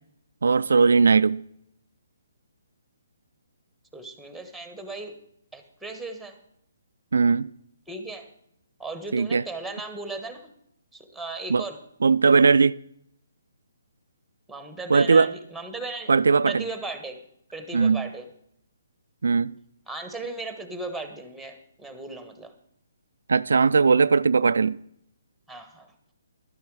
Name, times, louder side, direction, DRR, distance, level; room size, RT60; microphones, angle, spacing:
voice 1, 0.4-1.4 7.1-7.5 9.1-9.4 11.5-11.6 12.0-12.8 14.9-15.3 16.1-16.6 17.7-18.0 19.2-19.5 23.3-24.8, right 4 dB, 80° right, 0.3 m, -19 dB
voice 2, 3.9-5.1 5.5-6.4 7.9-8.3 8.8-10.5 10.9-11.8 14.5-16.1 16.5-17.2 17.5-18.3 19.9-22.5 25.5-25.9, right 3 dB, ahead, 1.3 m, -36 dB
12.0 x 11.0 x 4.8 m
hypercardioid pair, 155°, 0 cm